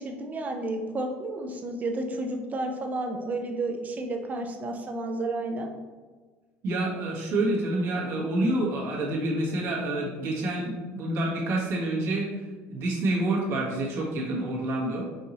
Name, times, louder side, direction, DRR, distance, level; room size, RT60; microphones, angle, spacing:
voice 1, 0.0-5.7, right 2 dB, 30° right, 3 dB, 0.7 m, -31 dB
voice 2, 6.6-12.3 12.7-15.0, right 2 dB, 60° right, -4 dB, 1.4 m, -28 dB
5.5 x 2.7 x 3.0 m, 1.4 s
supercardioid pair, 105°, 5 cm